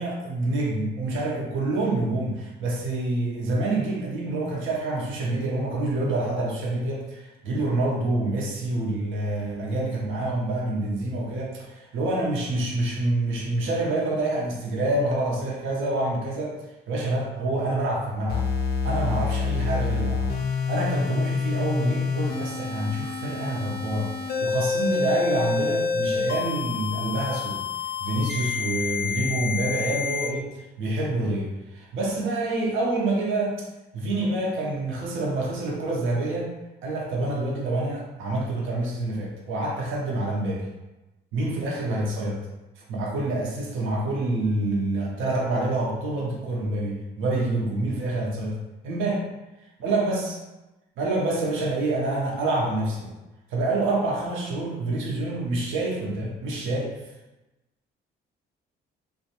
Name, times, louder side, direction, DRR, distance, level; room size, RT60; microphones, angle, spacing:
voice 1, 0.0-16.6 16.9-18.5 18.8-27.6 28.0-33.7 33.9-36.5 36.8-40.7 41.3-42.4 42.8-48.6 48.8-49.2 49.8-50.4 51.0-53.1 53.5-56.9, right 2 dB, 80° right, -3 dB, 0.7 m, -27 dB
sound 1, 18.3-30.3, left 5 dB, 55° left, 0.4 m, -28 dB
2.5 x 2.1 x 2.8 m, 1.0 s
cardioid pair, 90°, 20 cm